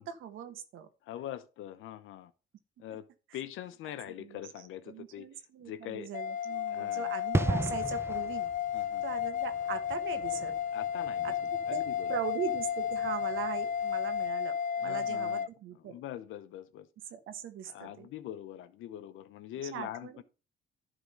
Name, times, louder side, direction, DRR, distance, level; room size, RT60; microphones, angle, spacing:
voice 1, 0.0-0.9 2.9-3.0 4.2-8.5 9.0-10.5 11.2-11.8 12.1-16.0 17.1-18.1 19.7-20.2, right 8 dB, 85° right, 1.4 m, -40 dB
voice 2, 1.1-2.3 2.8-3.1 3.3-5.3 5.6-6.1 6.7-7.1 8.7-9.0 10.7-11.3 11.7-12.1 14.8-15.5 15.9-16.9 17.7-20.2, left 11 dB, 85° left, 0.9 m, -43 dB
sound 1, 6.1-15.5, left 9 dB, 40° left, 0.5 m, -33 dB
sound 2, 7.3-13.8 14.1-14.3, right 2 dB, 15° right, 0.4 m, -37 dB
11.5 x 3.8 x 5.3 m
cardioid pair, 90°, 20 cm